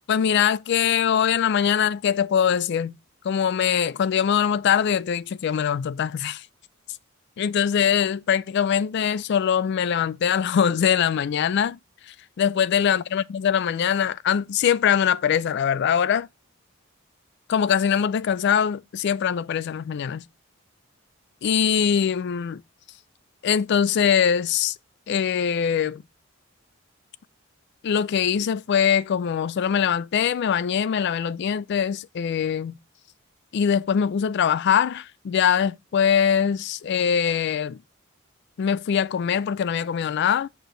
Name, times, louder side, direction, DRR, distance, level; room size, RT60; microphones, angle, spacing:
voice 1, 0.1-3.0 3.2-6.5 7.4-11.8 12.1-16.3 17.5-20.2 21.4-22.6 23.4-24.8 25.1-26.0 27.8-32.8 33.5-37.8 38.6-40.5, left 8 dB, 55° left, 0.3 m, -22 dB
6.6 x 4.9 x 3.8 m
head